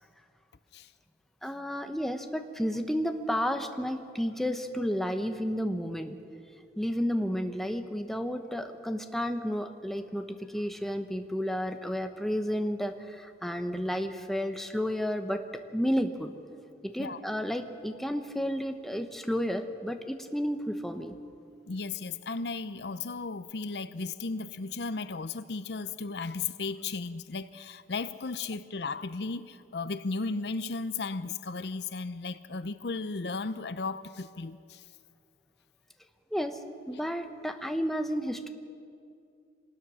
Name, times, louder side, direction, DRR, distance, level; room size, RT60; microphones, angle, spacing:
voice 1, 1.4-6.2 6.8-16.3 16.8-21.2 36.3-36.6 36.9-38.5, equal, ahead, 6 dB, 1.0 m, -32 dB
voice 2, 21.7-34.8, left 4 dB, 65° left, 13 dB, 0.6 m, -35 dB
25.0 x 19.5 x 6.3 m, 2.5 s
head